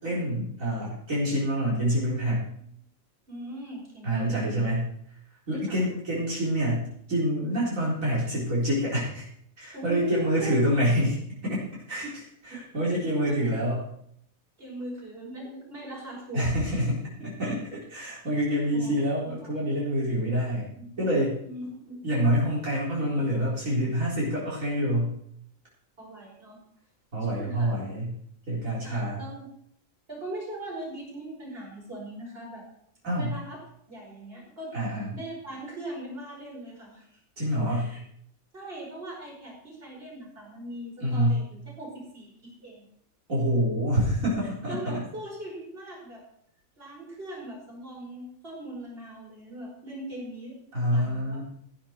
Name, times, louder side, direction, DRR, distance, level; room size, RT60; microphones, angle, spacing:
voice 1, 0.0-2.5 4.0-4.9 5.5-9.2 9.6-11.6 11.9-13.8 16.3-20.7 21.0-21.4 22.0-25.1 27.1-28.2 28.5-29.2 33.0-33.3 34.7-35.1 37.4-37.9 41.0-41.4 43.3-45.0 50.7-51.4, equal, 70° right, -7 dB, 4.5 m, -27 dB
voice 2, 3.3-4.7 5.5-5.8 9.7-10.6 12.9-13.0 13.2-13.4 14.6-16.4 18.7-18.9 19.2-19.5 20.7-21.0 21.4-22.0 26.0-26.6 27.3-27.8 28.8-29.5 30.1-32.6 33.1-33.6 33.9-34.7 35.1-37.2 37.7-38.0 38.5-42.9 44.7-46.2 46.8-50.6 50.9-51.4, right 1 dB, 45° right, -3 dB, 5.6 m, -40 dB
15.0 x 11.0 x 4.5 m, 0.68 s
omnidirectional pair, 1.5 m